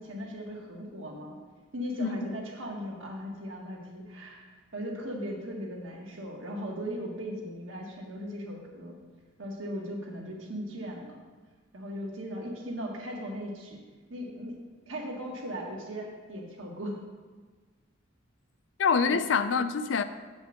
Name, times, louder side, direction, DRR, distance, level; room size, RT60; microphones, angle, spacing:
voice 1, 0.0-1.4 1.7-4.4 4.7-9.0 9.4-11.2 11.7-13.8 14.1-14.6 14.9-17.0 19.0-19.2, equal, 80° right, -1 dB, 1.7 m, -38 dB
voice 2, 18.8-20.0, left 5 dB, 65° left, 11 dB, 0.4 m, -26 dB
7.3 x 5.3 x 6.4 m, 1.4 s
head